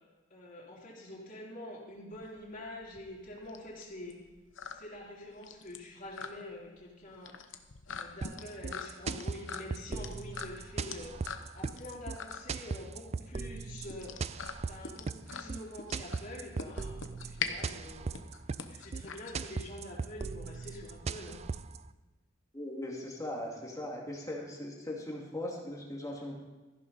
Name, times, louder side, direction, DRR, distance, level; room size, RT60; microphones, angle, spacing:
voice 1, 0.3-4.2 4.7-7.3 7.9-11.2 11.5-14.1 14.6-18.2 18.7-21.4, left 1 dB, 45° left, -6 dB, 3.5 m, -46 dB
sound 1, 2.1-19.9, left 5 dB, 70° left, 0.9 m, -43 dB
sound 2, 8.2-21.8, right 4 dB, 35° right, 0.4 m, -38 dB
voice 2, 22.5-26.3, left 1 dB, 20° left, -1 dB, 2.4 m, -39 dB
14.5 x 11.5 x 4.1 m, 1.2 s
head